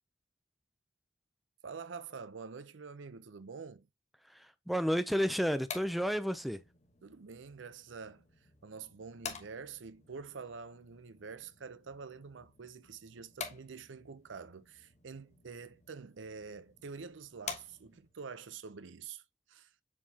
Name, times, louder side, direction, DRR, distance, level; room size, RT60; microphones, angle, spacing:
voice 1, 1.6-3.9 7.0-8.3 8.6-19.2 19.5-19.7, right 5 dB, 90° right, 0.6 m, -47 dB
voice 2, 4.3-6.6, equal, ahead, 0.4 m, -31 dB
sound 1, 5.3-18.2, left 6 dB, 40° left, 1.2 m, -50 dB
7.4 x 4.6 x 2.8 m
head